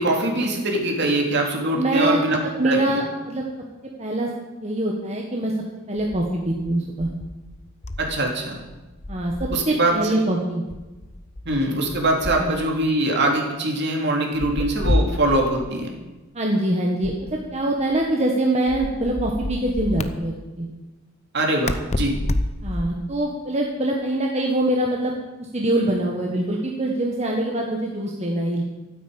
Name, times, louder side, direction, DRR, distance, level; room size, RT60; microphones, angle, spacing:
voice 1, 0.0-2.4 2.6-3.0 8.0-8.6 9.5-10.1 11.4-15.9 21.3-22.1, right 2 dB, 55° right, 0 dB, 3.2 m, -22 dB
voice 2, 1.7-2.2 2.6-3.4 4.0-4.3 4.6-5.5 5.9-7.1 9.1-10.6 12.4-12.5 16.3-20.7 22.6-28.6, right 1 dB, 30° right, -1 dB, 1.7 m, -24 dB
sound 1, 6.0-8.3 8.5-9.8 10.7-12.9 14.3-15.7 17.0-18.1 18.7-20.1 21.7-23.1, left 1 dB, 35° left, 0.8 m, -29 dB
13.5 x 9.5 x 9.0 m, 1.1 s
head